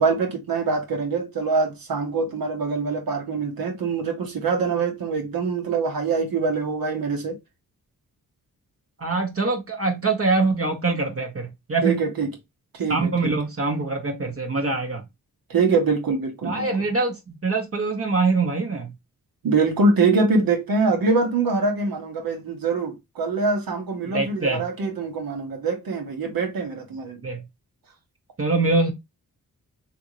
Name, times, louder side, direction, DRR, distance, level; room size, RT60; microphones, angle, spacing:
voice 1, 0.0-7.4 11.8-12.3 12.7-13.3 15.5-16.7 19.4-27.2, right 4 dB, 70° right, 1.3 m, -24 dB
voice 2, 9.0-12.0 12.9-15.0 16.4-18.9 24.1-24.7 27.2-27.4 28.4-28.9, right 3 dB, 40° right, 1.0 m, -24 dB
3.5 x 2.6 x 2.9 m
cardioid pair, 55°, 36 cm